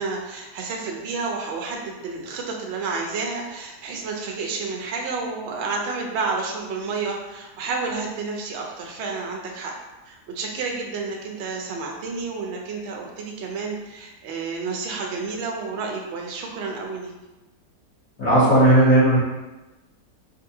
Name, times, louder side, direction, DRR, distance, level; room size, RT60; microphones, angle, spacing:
voice 1, 0.0-9.7 10.1-17.1, right 4 dB, 80° right, 0 dB, 0.6 m, -30 dB
voice 2, 18.2-19.2, right 1 dB, 60° left, -12 dB, 1.5 m, -15 dB
3.8 x 2.5 x 2.7 m, 1.1 s
omnidirectional pair, 1.8 m